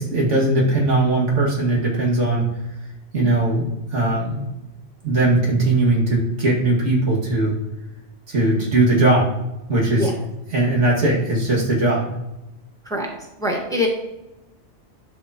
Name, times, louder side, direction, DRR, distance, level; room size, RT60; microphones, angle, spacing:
voice 1, 0.0-2.5 3.1-4.4 5.0-7.5 8.3-9.3 9.7-10.0 10.5-12.1, right 2 dB, 75° right, -3 dB, 2.5 m, -19 dB
voice 2, 13.4-13.9, left 1 dB, 5° left, -1 dB, 1.5 m, -23 dB
11.5 x 6.2 x 3.0 m, 0.97 s
omnidirectional pair, 1.2 m